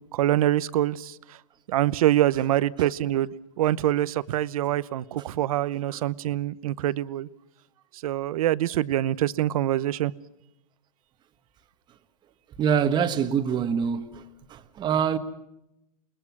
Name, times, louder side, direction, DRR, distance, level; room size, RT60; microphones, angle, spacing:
voice 1, 0.1-1.2 1.7-7.3 8.0-10.1, right 13 dB, 65° right, 0.9 m, -25 dB
voice 2, 12.6-14.2 14.5-15.2, right 7 dB, 20° right, 1.4 m, -25 dB
28.5 x 21.0 x 6.1 m
hypercardioid pair, 140°, 20 cm